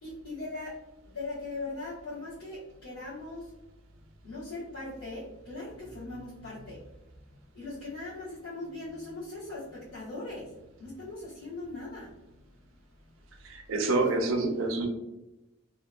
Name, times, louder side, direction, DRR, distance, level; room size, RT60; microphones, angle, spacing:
voice 1, 0.0-3.5 4.2-12.2 14.0-14.1, left 2 dB, 85° left, -12 dB, 1.0 m, -40 dB
voice 2, 13.5-14.9, right 2 dB, 70° right, 3 dB, 0.5 m, -27 dB
2.8 x 2.1 x 2.3 m, 0.95 s
head